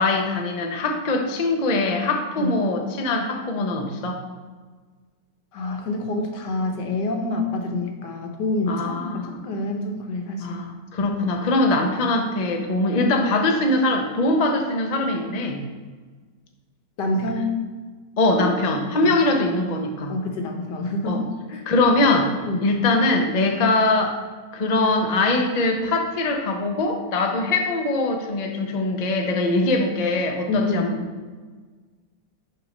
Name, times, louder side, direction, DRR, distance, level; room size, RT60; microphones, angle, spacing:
voice 1, 0.0-4.2 8.7-9.3 10.4-15.6 18.2-20.1 21.1-21.2 21.7-22.3 22.6-24.2 24.5-31.0, left 2 dB, 65° left, 2 dB, 0.4 m, -22 dB
voice 2, 5.5-10.6 17.0-17.5 19.0-19.1 20.1-21.7 22.5-22.7 29.6-29.7 30.5-30.9, left 2 dB, 85° left, 3 dB, 1.5 m, -27 dB
5.8 x 3.6 x 5.3 m, 1.4 s
omnidirectional pair, 1.8 m